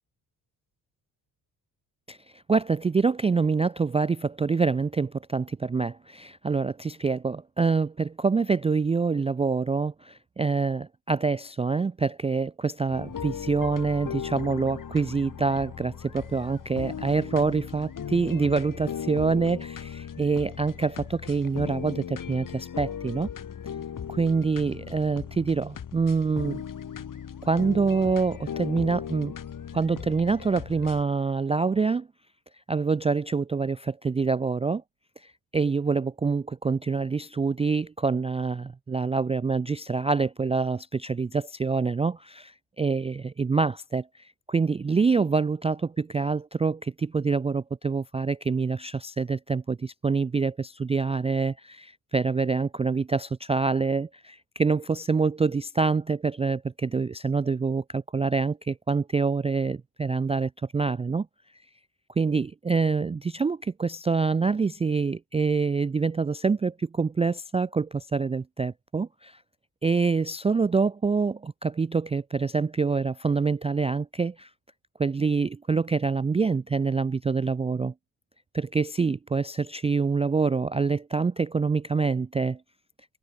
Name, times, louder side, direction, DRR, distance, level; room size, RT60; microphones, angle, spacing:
voice 1, 2.1-23.3 24.1-26.6 27.4-29.3 29.7-32.1 32.7-34.8 35.2-44.1 44.5-61.3 62.2-69.4 69.8-74.5 75.0-77.9 78.5-82.6, right 4 dB, 15° right, 0.3 m, -26 dB
sound 1, 12.9-31.0, left 8 dB, 50° left, 3.1 m, -37 dB
cardioid pair, 105°, 41 cm